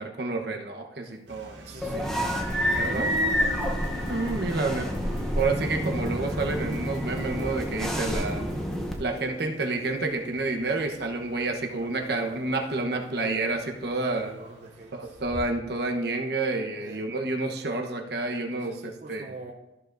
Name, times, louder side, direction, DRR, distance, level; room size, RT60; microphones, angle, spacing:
voice 1, 0.0-2.1 2.7-4.9 5.4-8.5 9.0-14.3 14.9-19.3, right 3 dB, 55° right, 3 dB, 1.0 m, -29 dB
sound 1, 1.3-15.6, right 1 dB, 80° right, 2.2 m, -48 dB
voice 2, 1.7-2.4 2.8-4.4 11.7-13.2 13.9-15.2 16.8-17.1 18.6-19.5, right 3 dB, 40° right, 0 dB, 0.6 m, -44 dB
sound 2, 1.8-8.9, equal, ahead, 0.8 m, -29 dB
sound 3, 2.0-10.3, equal, 65° left, 2.8 m, -43 dB
13.5 x 6.9 x 2.6 m, 0.96 s
head